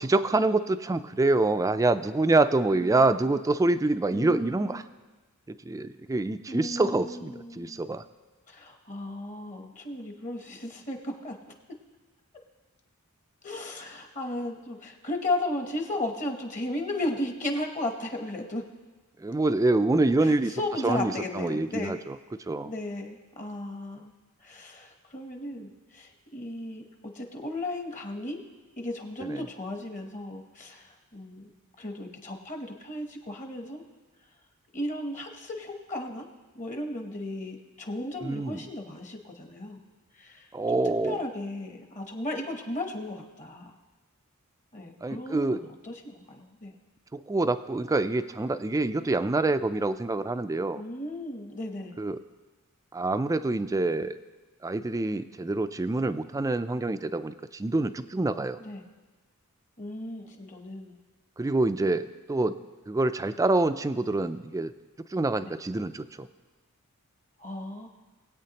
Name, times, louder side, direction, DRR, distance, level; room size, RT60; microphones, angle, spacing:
voice 1, 0.0-4.8 5.6-8.0 19.2-22.2 22.5-22.7 29.2-29.4 38.2-38.6 40.5-41.2 45.0-45.6 47.1-50.8 52.0-52.2 52.9-54.2 54.6-58.6 61.4-62.6 62.9-64.7 65.1-66.3, right 2 dB, 15° right, 12 dB, 0.3 m, -26 dB
voice 2, 2.7-3.2 4.1-4.9 6.5-7.8 8.5-11.5 13.4-18.6 20.2-22.0 22.6-24.1 24.4-26.8 27.1-28.4 28.8-31.5 31.8-33.8 34.7-36.3 36.5-39.8 40.1-43.7 44.7-46.7 50.7-52.0 58.6-58.8 59.8-61.0 65.4-65.5 67.4-67.9, left 1 dB, 35° left, 4 dB, 1.0 m, -35 dB
20.5 x 8.4 x 2.9 m, 1.3 s
head